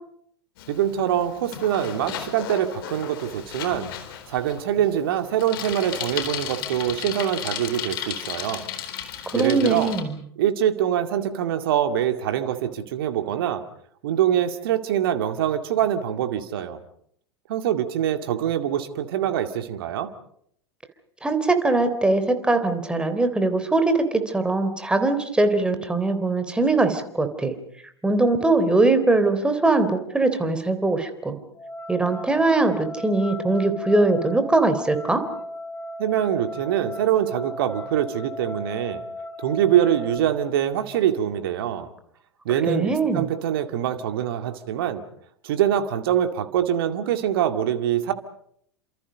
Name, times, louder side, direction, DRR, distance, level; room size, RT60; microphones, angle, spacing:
Bicycle, 0.6-10.0, left 10 dB, 55° left, 4.2 m, -35 dB
voice 1, 0.7-3.9 4.3-8.7 9.3-10.0 10.4-13.6 14.0-16.8 17.5-20.1 36.0-39.0 39.4-41.9 42.5-45.0 45.4-48.1, right 10 dB, 55° right, 8 dB, 2.3 m, -24 dB
voice 2, 9.3-10.2 21.2-27.5 28.0-31.4 31.9-35.2 42.6-43.3, right 2 dB, 5° right, 9 dB, 3.6 m, -21 dB
sound 1, 31.5-40.2, left 1 dB, 20° left, 3.3 m, -36 dB
29.5 x 27.0 x 5.3 m, 0.68 s
figure-of-eight pair, 85°, 14 cm